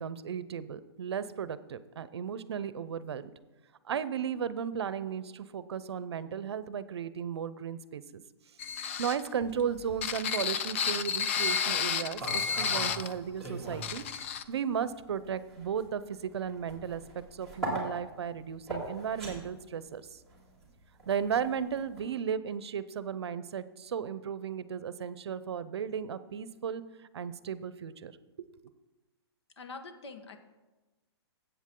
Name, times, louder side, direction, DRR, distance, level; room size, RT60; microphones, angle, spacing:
voice 1, 0.0-3.3 3.9-8.2 9.0-14.0 14.5-20.2 21.1-26.8 27.1-28.1 28.4-28.5, right 7 dB, 70° right, 15 dB, 0.7 m, -35 dB
sound 1, 8.6-13.1 13.4-13.5 13.8-14.4, left 7 dB, 30° left, 0.4 m, -31 dB
sound 2, 11.9-14.0 14.3-22.1, right 2 dB, 5° left, 2.6 m, -40 dB
voice 2, 29.6-30.4, left 3 dB, 80° left, 7 dB, 1.4 m, -44 dB
14.0 x 8.3 x 3.8 m, 1.2 s
hypercardioid pair, 170°, 14 cm